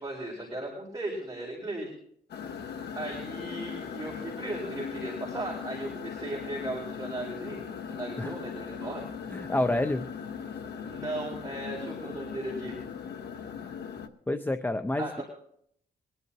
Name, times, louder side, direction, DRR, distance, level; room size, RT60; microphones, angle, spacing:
voice 1, 0.0-1.9 2.9-9.0 10.8-12.8 15.0-15.2, right 2 dB, 20° right, -3 dB, 4.3 m, -37 dB
sound 1, 2.3-14.1, left 7 dB, 85° left, 1.1 m, -39 dB
voice 2, 9.3-10.1 14.3-15.2, left 1 dB, 10° left, 9 dB, 0.5 m, -28 dB
22.5 x 11.0 x 2.9 m, 0.67 s
cardioid pair, 105°, 17 cm